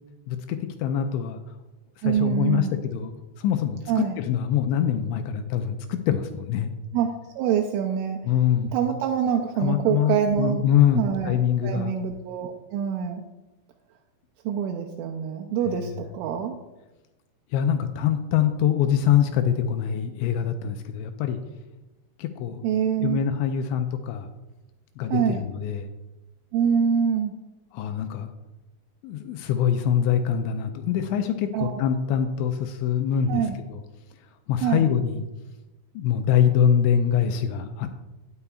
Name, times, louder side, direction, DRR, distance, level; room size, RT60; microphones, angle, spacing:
voice 1, 0.3-1.4 2.0-3.1 3.4-6.7 8.3-8.7 9.6-12.0 15.7-16.0 17.5-21.4 22.2-22.6 23.0-24.3 25.0-25.9 27.7-28.3 29.0-33.8 34.5-35.2 36.0-38.1, left 9 dB, 85° left, 7 dB, 2.6 m, -24 dB
voice 2, 2.0-2.7 3.9-4.2 6.9-8.2 8.7-10.7 10.9-13.2 14.5-16.6 22.6-23.2 25.1-25.4 26.5-27.4 31.5-31.8 33.3-33.6 34.6-34.9, right 8 dB, 85° right, 3 dB, 3.0 m, -25 dB
16.5 x 6.9 x 2.4 m, 1.0 s
omnidirectional pair, 5.7 m